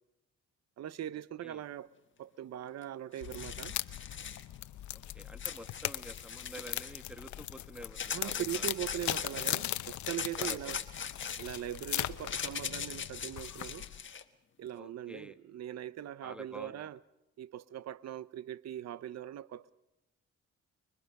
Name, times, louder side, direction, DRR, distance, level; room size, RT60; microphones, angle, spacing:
voice 1, 0.8-1.9 2.2-3.8 8.1-10.8 11.4-13.9 14.6-17.0 17.4-19.7, right 11 dB, 60° right, 0.8 m, -41 dB
sound 1, 2.8-2.9 3.1-4.4 5.4-7.0 7.9-9.6 10.0-14.2, left 7 dB, 40° left, 1.4 m, -40 dB
sound 2, 3.2-14.0, left 13 dB, 70° left, 0.9 m, -39 dB
voice 2, 4.9-8.6 10.4-10.8 14.7-15.4 16.2-16.9, equal, 5° right, 1.5 m, -49 dB
25.0 x 23.5 x 5.4 m
cardioid pair, 90°, 30 cm